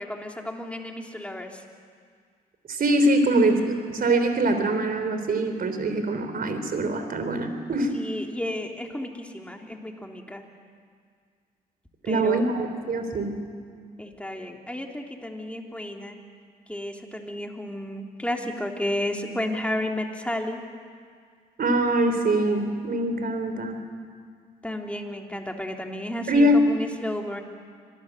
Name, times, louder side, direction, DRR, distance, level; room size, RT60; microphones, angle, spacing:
voice 1, 0.0-1.6 7.9-10.4 12.0-12.5 14.0-16.2 16.7-20.6 24.6-27.4, left 1 dB, 5° left, 2 dB, 3.4 m, -32 dB
voice 2, 2.7-8.0 12.1-13.4 21.6-23.8 26.3-26.6, right 1 dB, 55° right, 8 dB, 3.5 m, -23 dB
25.5 x 18.0 x 8.1 m, 2.1 s
supercardioid pair, 55°, 18 cm